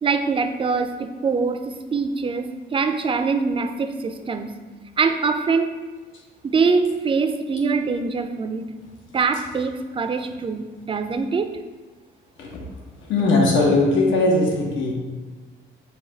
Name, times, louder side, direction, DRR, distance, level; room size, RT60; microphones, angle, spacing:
voice 1, 0.0-4.5 5.0-5.7 6.4-8.7 9.1-11.6, right 4 dB, 25° right, 8 dB, 0.4 m, -23 dB
voice 2, 13.0-14.9, left 2 dB, 75° left, -1 dB, 1.0 m, -19 dB
5.8 x 2.3 x 3.9 m, 1.3 s
cardioid pair, 90°, 20 cm